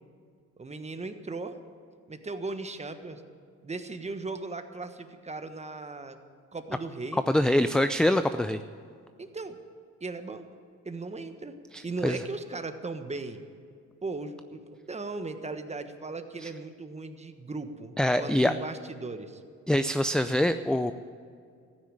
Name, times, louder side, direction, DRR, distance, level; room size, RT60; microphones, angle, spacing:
voice 1, 0.6-1.5 2.1-3.2 3.6-6.2 6.5-7.2 9.2-9.6 10.0-10.4 10.8-11.6 11.8-13.4 14.0-14.6 14.9-19.4, right 3 dB, 20° right, 8 dB, 1.3 m, -37 dB
voice 2, 7.3-8.6 11.7-12.2 16.4-16.5 18.0-18.5 19.7-20.9, left 1 dB, 5° left, 11 dB, 0.4 m, -24 dB
14.5 x 9.6 x 9.9 m, 2.2 s
cardioid pair, 90°, 30 cm